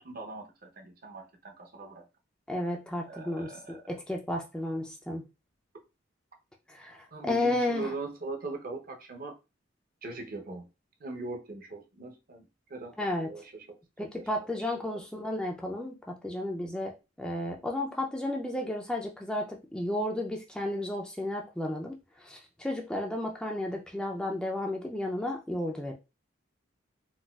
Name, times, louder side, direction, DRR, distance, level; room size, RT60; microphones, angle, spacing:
voice 1, 0.0-2.0 3.1-3.8 7.1-9.4 10.0-10.7 11.0-14.2 14.5-14.6 14.9-15.0, right 3 dB, 50° right, 0.7 m, -41 dB
voice 2, 2.5-5.3 6.7-7.9 13.0-13.4 14.0-25.9, left 1 dB, 5° left, 0.3 m, -33 dB
3.9 x 2.2 x 2.3 m
head